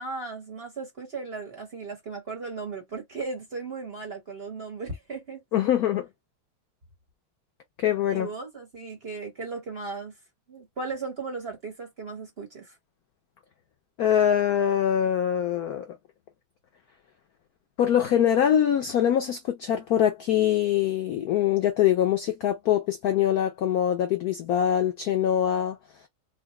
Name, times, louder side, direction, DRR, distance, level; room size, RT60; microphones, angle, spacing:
voice 1, 0.0-5.4 8.1-10.1 10.5-12.8, right 4 dB, 35° right, 1.1 m, -36 dB
voice 2, 5.5-6.1 7.8-8.3 14.0-15.9 17.8-25.8, left 10 dB, 85° left, 0.8 m, -23 dB
4.8 x 2.0 x 2.9 m
omnidirectional pair, 2.3 m